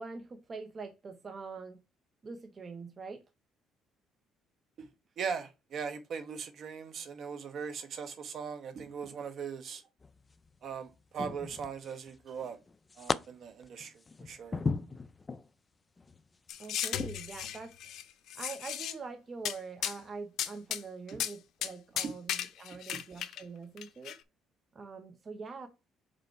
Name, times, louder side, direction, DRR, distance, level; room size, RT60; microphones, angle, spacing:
voice 1, 0.0-1.8 2.2-3.2 16.6-17.7 18.3-24.2 24.7-25.7, right 4 dB, 35° right, 0.9 m, -44 dB
voice 2, 5.2-9.8 10.6-12.6 13.0-13.9 14.2-14.6 22.0-22.1, right 6 dB, 55° right, 1.1 m, -39 dB
sound 1, 10.0-10.5 11.2-12.1 12.4-13.2 13.6-15.5 16.0-16.2 16.9-17.1, left 4 dB, 25° left, 0.4 m, -36 dB
sound 2, 16.5-18.0 18.3-18.9 19.4-19.6 19.8-20.0 20.4-20.8 21.1-21.3 21.6-21.7 22.0-23.4 23.8-24.1, left 11 dB, 70° left, 0.7 m, -35 dB
5.3 x 4.3 x 4.6 m
cardioid pair, 105°, 0 cm